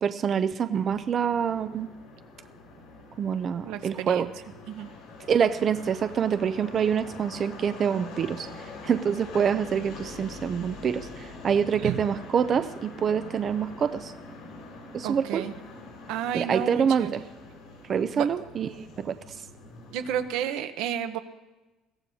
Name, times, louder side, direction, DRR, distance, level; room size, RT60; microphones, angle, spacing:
voice 1, 0.0-1.9 3.2-4.3 5.3-8.5 8.8-14.1 14.9-15.4 16.3-17.2 17.9-19.1, right 7 dB, 30° right, 10 dB, 0.4 m, -26 dB
sound 1, 0.9-20.3, left 2 dB, 75° left, 6.5 m, -44 dB
voice 2, 3.6-4.2 4.7-4.9 11.8-12.0 15.0-15.5 16.1-17.1 18.1-18.3 19.9-21.2, right 9 dB, 85° right, 9 dB, 0.9 m, -31 dB
22.0 x 15.5 x 2.8 m, 1.1 s
cardioid pair, 175°, 0 cm